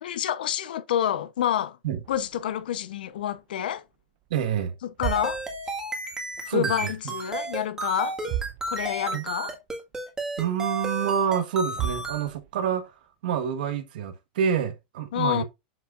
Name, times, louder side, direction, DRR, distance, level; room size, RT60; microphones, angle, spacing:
voice 1, 0.0-1.8 2.1-3.8 5.0-5.4 6.5-8.2 8.7-9.5 15.1-15.4, left 10 dB, 85° left, 0.9 m, -28 dB
sound 1, 2.0-3.7 4.0-4.3 4.8-6.6 6.9-7.6 7.8-7.9 8.2-9.2 9.6-9.7 10.3-10.4 11.4-11.5 11.7-12.7, right 12 dB, 40° right, 0.4 m, -36 dB
voice 2, 4.3-4.7 6.4-6.7 9.1-9.2 10.4-12.9 13.2-15.4, right 8 dB, 75° right, 1.4 m, -27 dB
sound 2, 5.0-12.3, right 2 dB, 10° right, 1.8 m, -32 dB
7.9 x 5.8 x 2.5 m
supercardioid pair, 140°, 5 cm